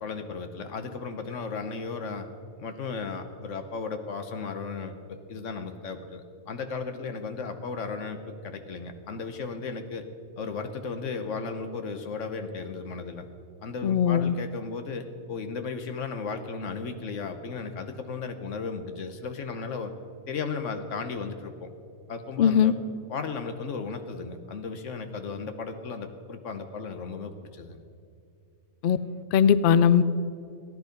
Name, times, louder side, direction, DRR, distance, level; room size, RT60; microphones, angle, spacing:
voice 1, 0.0-2.3 2.6-10.0 10.4-13.2 13.6-19.9 20.3-21.7 22.1-22.7 23.1-27.8, left 4 dB, 60° left, 8 dB, 1.3 m, -35 dB
voice 2, 13.8-14.3 22.4-22.7 28.8-29.0 29.3-30.0, left 8 dB, 85° left, 15 dB, 0.4 m, -20 dB
15.5 x 11.0 x 5.2 m, 2.4 s
omnidirectional pair, 1.5 m